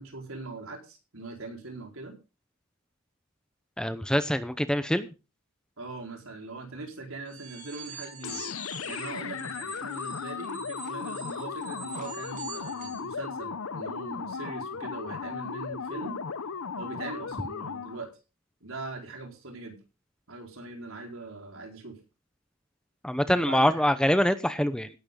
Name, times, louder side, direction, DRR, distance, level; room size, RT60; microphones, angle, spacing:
voice 1, 0.0-2.2 5.8-8.4 8.9-16.2 16.8-18.1 18.6-19.8 20.3-22.0 23.2-23.8, right 3 dB, 70° right, 2 dB, 4.6 m, -41 dB
voice 2, 3.8-5.1 23.0-24.9, equal, 5° left, 11 dB, 0.7 m, -24 dB
sound 1, 7.3-13.1, right 6 dB, 40° right, 6.1 m, -45 dB
sound 2, 8.2-18.1, left 6 dB, 70° left, 0.7 m, -36 dB
17.5 x 11.0 x 3.8 m, 0.31 s
head